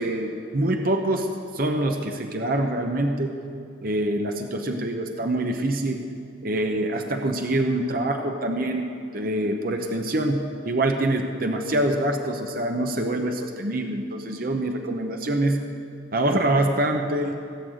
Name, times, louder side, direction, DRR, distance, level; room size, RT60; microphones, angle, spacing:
voice 1, 0.0-3.3 3.8-6.0 6.4-8.9 9.1-15.7 16.1-17.3, right 1 dB, 50° right, 4 dB, 0.9 m, -25 dB
17.0 x 6.7 x 7.9 m, 2.5 s
head